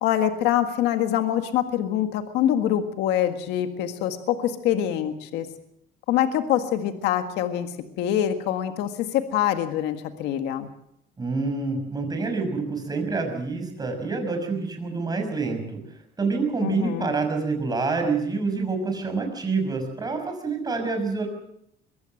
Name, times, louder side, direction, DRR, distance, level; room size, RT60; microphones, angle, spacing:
voice 1, 0.0-5.5 6.1-7.7 8.0-10.7 16.6-17.1, left 11 dB, 90° left, 8 dB, 1.7 m, -25 dB
voice 2, 11.2-15.8 16.2-21.3, right 4 dB, 25° right, 5 dB, 6.0 m, -27 dB
22.5 x 15.5 x 7.8 m, 0.76 s
cardioid pair, 110°, 17 cm